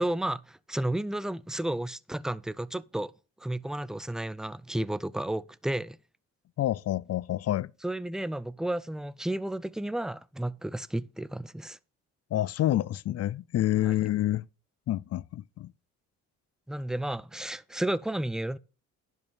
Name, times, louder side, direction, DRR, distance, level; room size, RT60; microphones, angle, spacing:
voice 1, 0.0-3.1 3.4-6.0 7.8-11.8 13.8-13.9 16.7-18.6, right 1 dB, ahead, 0.4 m, -32 dB
voice 2, 6.6-7.7 12.3-14.5 14.9-15.7, left 13 dB, 55° left, 0.5 m, -28 dB
10.5 x 5.5 x 5.4 m
cardioid pair, 90°, 30 cm